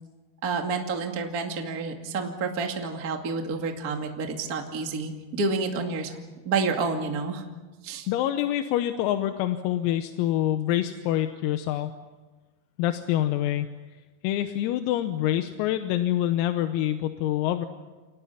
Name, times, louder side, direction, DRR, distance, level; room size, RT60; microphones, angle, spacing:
voice 1, 0.4-6.2 6.4-7.4 7.8-8.1, right 4 dB, 75° right, 3 dB, 0.8 m, -29 dB
voice 2, 8.1-11.9 12.8-13.7 14.2-17.7, left 12 dB, 90° left, 7 dB, 3.7 m, -26 dB
29.5 x 27.0 x 5.8 m, 1.2 s
omnidirectional pair, 6.0 m